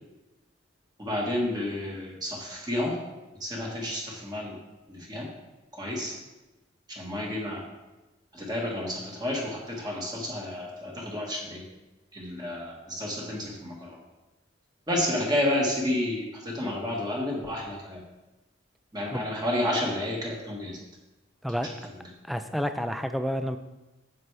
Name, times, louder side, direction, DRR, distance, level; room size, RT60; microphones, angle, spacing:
voice 1, 1.0-3.0 3.4-4.6 4.9-5.3 5.7-6.1 6.9-7.6 8.3-11.6 12.1-14.0 14.9-18.0 18.9-20.8 21.6-21.7, left 1 dB, 20° right, -2 dB, 1.4 m, -30 dB
voice 2, 22.3-23.6, equal, ahead, 8 dB, 0.3 m, -29 dB
9.3 x 7.6 x 3.3 m, 1.1 s
head